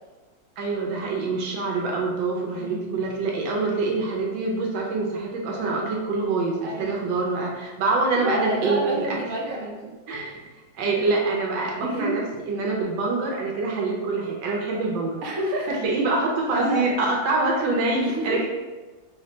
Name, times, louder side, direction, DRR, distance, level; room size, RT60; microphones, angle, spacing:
voice 1, 0.6-9.2 10.1-10.5 10.8-15.2 15.7-18.5, right 3 dB, 75° right, -1 dB, 1.3 m, -25 dB
voice 2, 2.6-3.0 6.6-7.0 8.2-9.9 10.8-11.3 11.8-12.2 15.2-15.8 16.5-16.9 18.0-18.4, right 1 dB, 60° right, -3 dB, 1.0 m, -29 dB
3.5 x 2.2 x 3.8 m, 1.2 s
omnidirectional pair, 2.1 m